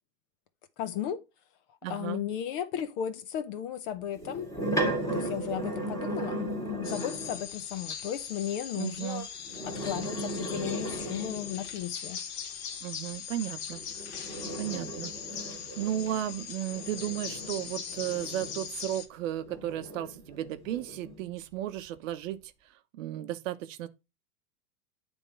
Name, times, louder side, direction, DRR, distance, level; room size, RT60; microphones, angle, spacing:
voice 1, 0.8-1.2 1.8-4.5 5.1-9.3 9.6-12.2, left 10 dB, 35° left, 0.7 m, -35 dB
voice 2, 1.8-2.2 8.7-9.2 12.8-13.8 14.6-15.2 15.8-22.4 22.9-23.9, right 12 dB, 50° right, 0.8 m, -34 dB
sound 1, 4.1-7.5 9.4-11.8 13.7-18.9 19.4-21.2, right 1 dB, 5° left, 1.7 m, -36 dB
sound 2, 6.8-19.1, left 8 dB, 65° left, 1.6 m, -40 dB
9.2 x 3.6 x 4.5 m
hypercardioid pair, 145°, 48 cm